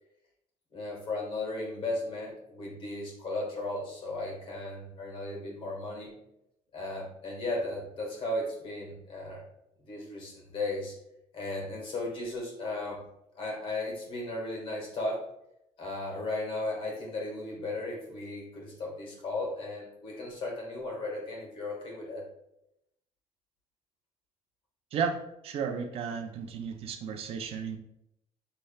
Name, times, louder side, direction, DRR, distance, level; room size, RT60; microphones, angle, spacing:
voice 1, 0.7-6.1 6.7-9.4 9.8-11.0 11.3-13.0 13.4-15.3 15.8-22.3, left 2 dB, 50° left, -2 dB, 1.7 m, -35 dB
voice 2, 25.4-27.8, right 6 dB, 60° right, 5 dB, 0.5 m, -33 dB
6.9 x 3.2 x 2.3 m, 0.83 s
cardioid pair, 140°, 11 cm